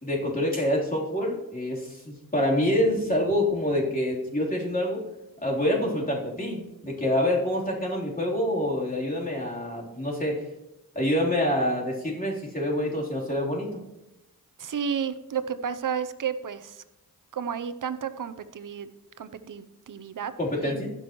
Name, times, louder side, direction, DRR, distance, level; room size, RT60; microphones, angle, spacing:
voice 1, 0.0-5.0 5.4-10.4 11.0-13.8 20.4-20.9, left 1 dB, 25° left, -4 dB, 3.7 m, -26 dB
voice 2, 14.6-16.8 17.3-18.9 19.2-20.3 20.6-20.8, right 7 dB, 55° right, 12 dB, 0.8 m, -32 dB
15.5 x 6.3 x 3.1 m, 0.93 s
cardioid pair, 50°, 37 cm